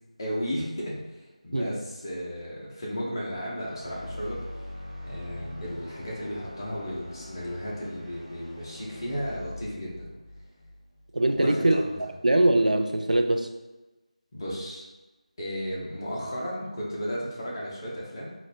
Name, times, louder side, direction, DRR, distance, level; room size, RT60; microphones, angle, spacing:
voice 1, 0.2-1.0 1.4-4.4 5.0-10.1 11.3-12.0 14.3-14.8 15.4-18.3, equal, 30° left, -5 dB, 0.9 m, -34 dB
sound 1, 3.7-11.8, left 1 dB, ahead, 0.5 m, -43 dB
voice 2, 11.1-11.8 12.2-13.5, right 1 dB, 80° right, 5 dB, 0.4 m, -22 dB
4.0 x 2.5 x 2.7 m, 1.1 s
figure-of-eight pair, 165°, 4 cm